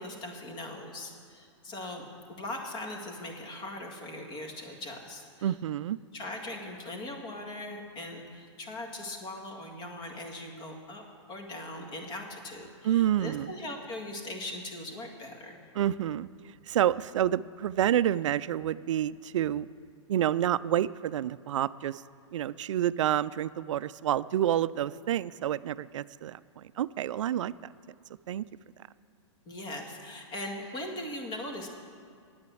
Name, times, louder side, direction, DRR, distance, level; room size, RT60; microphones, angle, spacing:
voice 1, 0.0-2.1 2.4-5.5 6.1-11.0 11.3-15.6 29.5-31.7, left 1 dB, 30° left, 2 dB, 1.9 m, -40 dB
voice 2, 5.4-6.0 12.8-13.5 15.7-16.3 16.7-19.7 20.1-22.0 22.3-27.7 28.3-28.4, right 11 dB, 75° right, 17 dB, 0.4 m, -28 dB
9.6 x 8.8 x 7.7 m, 2.2 s
hypercardioid pair, 135°, 16 cm